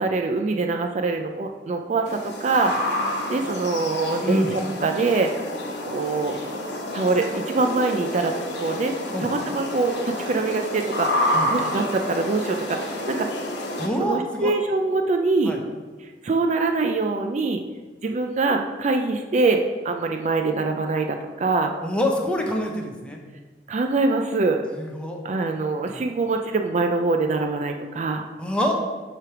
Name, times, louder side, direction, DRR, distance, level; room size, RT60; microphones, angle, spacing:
voice 1, 0.0-2.9 3.3-5.3 5.9-6.4 6.9-8.9 9.2-13.3 14.0-15.6 16.2-17.6 18.0-21.7 23.7-24.7 25.2-28.3, right 3 dB, 40° right, 4 dB, 0.4 m, -24 dB
sound 1, 2.1-13.9, left 1 dB, 75° left, 1.1 m, -29 dB
voice 2, 13.8-14.5 15.4-15.6 21.8-23.2 24.7-25.2 25.9-26.0 28.4-28.7, equal, 5° left, 1 dB, 0.8 m, -26 dB
7.6 x 3.4 x 5.9 m, 1.3 s
head